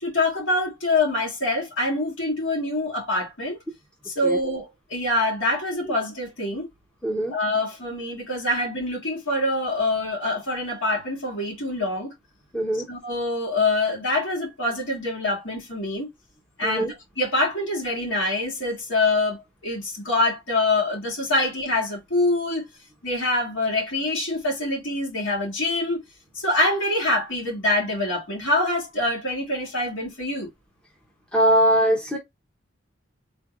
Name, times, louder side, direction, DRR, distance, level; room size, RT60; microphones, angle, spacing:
voice 1, 0.0-3.6 4.1-6.7 7.3-12.1 12.9-16.1 16.6-22.6 23.0-26.0 26.3-30.5, left 2 dB, 70° left, 2.1 m, -25 dB
voice 2, 7.0-7.4 12.5-12.9 16.6-16.9 31.3-32.2, right 1 dB, 5° left, 0.8 m, -21 dB
3.7 x 3.3 x 2.4 m
head